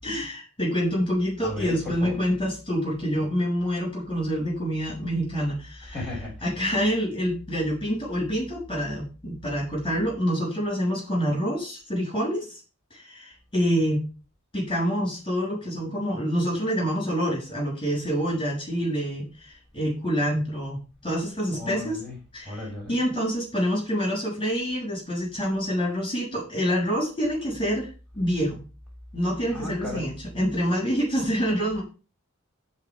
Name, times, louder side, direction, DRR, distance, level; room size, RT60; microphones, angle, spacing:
voice 1, 0.0-6.0 6.4-12.6 12.9-14.0 14.5-22.0 22.3-28.6 29.1-31.8, equal, 25° left, -3 dB, 6.9 m, -27 dB
voice 2, 1.4-2.2 5.9-6.3 21.5-22.1 22.4-23.0 29.5-30.1, left 2 dB, ahead, -5 dB, 7.0 m, -34 dB
14.0 x 4.7 x 6.1 m, 0.33 s
head